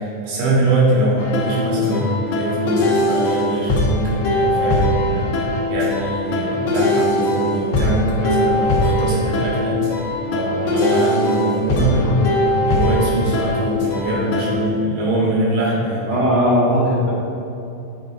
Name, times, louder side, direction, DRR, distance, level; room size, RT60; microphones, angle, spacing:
voice 1, 0.0-9.8 10.3-16.0, right 2 dB, 75° right, -5 dB, 3.5 m, -22 dB
sound 1, 1.2-14.5, left 1 dB, 65° left, 1.6 m, -20 dB
voice 2, 11.8-12.2 16.1-17.1, equal, 40° right, -10 dB, 1.5 m, -19 dB
8.1 x 5.2 x 4.8 m, 2.8 s
omnidirectional pair, 4.0 m